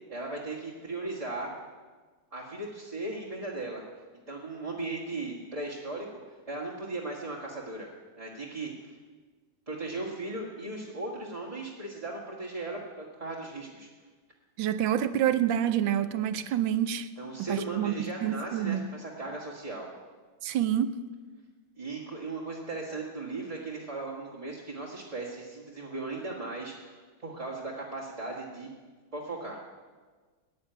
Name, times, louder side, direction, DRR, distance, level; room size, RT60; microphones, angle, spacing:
voice 1, 0.1-1.5 2.3-3.8 4.3-6.2 6.5-7.9 8.2-8.9 9.7-13.9 17.2-19.9 21.8-28.7 29.1-29.6, right 2 dB, 20° right, 1.7 m, -37 dB
voice 2, 14.6-17.1 17.4-18.9 20.4-21.0, right 10 dB, 70° right, 1.4 m, -27 dB
15.5 x 9.8 x 9.2 m
omnidirectional pair, 2.3 m